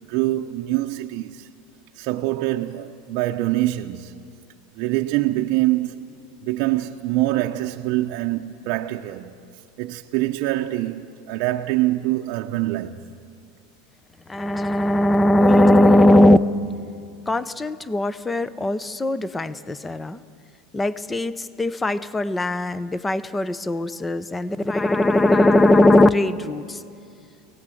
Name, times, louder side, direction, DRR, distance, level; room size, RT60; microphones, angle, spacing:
voice 1, 0.0-1.5 2.0-4.1 4.8-6.1 6.4-9.4 9.8-13.1, right 16 dB, 55° right, 0.7 m, -24 dB
voice 2, 14.3-16.4 17.3-20.2 20.7-26.8, left 1 dB, 10° left, 0.6 m, -19 dB
25.0 x 18.0 x 7.7 m
supercardioid pair, 145°, 0 cm